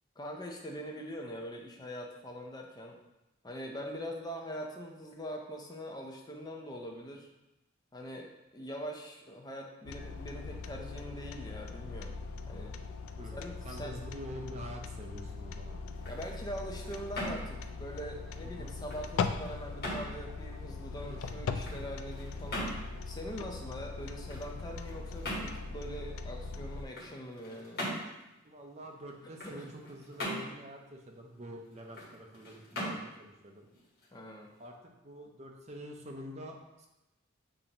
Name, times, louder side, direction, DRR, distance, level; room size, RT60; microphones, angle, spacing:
voice 1, 0.2-3.0 3.4-7.3 7.9-12.1 12.5-12.7 13.3-13.9 16.1-22.7 23.1-27.8 29.4-29.7 34.1-34.5, equal, 20° left, 1 dB, 0.5 m, -43 dB
sound 1, 9.9-26.9, left 4 dB, 80° left, 0.3 m, -40 dB
voice 2, 13.2-15.8 18.4-18.7 21.1-21.4 28.4-33.7 34.6-36.9, equal, 30° right, 2 dB, 0.5 m, -46 dB
sound 2, 15.8-34.7, equal, 50° left, 1.3 m, -43 dB
6.9 x 2.6 x 2.9 m, 0.97 s
head